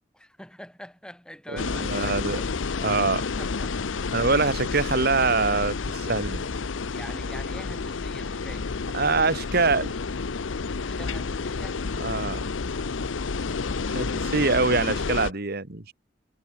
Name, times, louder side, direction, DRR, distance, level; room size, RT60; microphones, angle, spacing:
voice 1, 0.1-2.5 3.2-4.3 6.6-8.7 10.8-11.9 13.8-14.8, equal, 5° left, 3.9 m, -45 dB
voice 2, 1.5-2.4 2.8-3.2 4.1-6.4 8.9-10.0 12.0-12.5 13.9-15.9, right 3 dB, 55° right, 1.8 m, -24 dB
sound 1, 1.6-15.3, left 4 dB, 80° left, 0.7 m, -30 dB
head